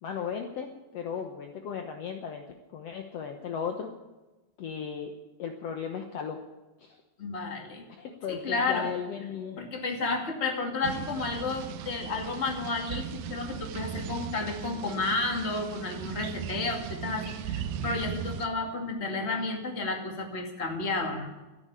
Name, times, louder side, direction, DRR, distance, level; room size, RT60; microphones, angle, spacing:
voice 1, 0.0-2.4 2.7-3.9 4.6-5.1 5.4-6.4 6.8-7.0 7.9-9.6, left 7 dB, 75° left, 4 dB, 1.4 m, -36 dB
voice 2, 7.2-7.8 8.3-8.9 9.6-21.3, left 3 dB, 25° left, 2 dB, 1.7 m, -32 dB
sound 1, 10.8-18.5, right 9 dB, 80° right, 2.8 m, -37 dB
13.5 x 10.5 x 8.8 m, 1.1 s
omnidirectional pair, 4.4 m